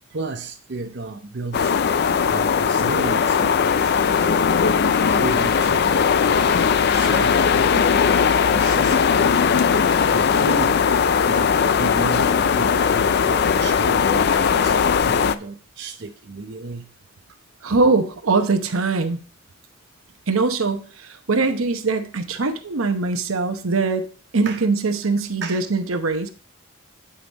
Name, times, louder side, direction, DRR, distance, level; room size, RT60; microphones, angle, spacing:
voice 1, 0.1-1.7 2.0-4.4 4.8-6.0 6.2-6.5 6.8-7.9 8.4-9.4 10.1-10.9 11.3-16.9 24.5-24.6 25.4-25.6, right 3 dB, 55° right, 0.7 m, -33 dB
sound 1, 1.5-15.4, left 6 dB, 50° left, 0.4 m, -19 dB
voice 2, 17.6-19.2 20.3-24.0 24.3-26.3, right 3 dB, 80° right, 0.9 m, -22 dB
8.8 x 5.0 x 4.0 m
head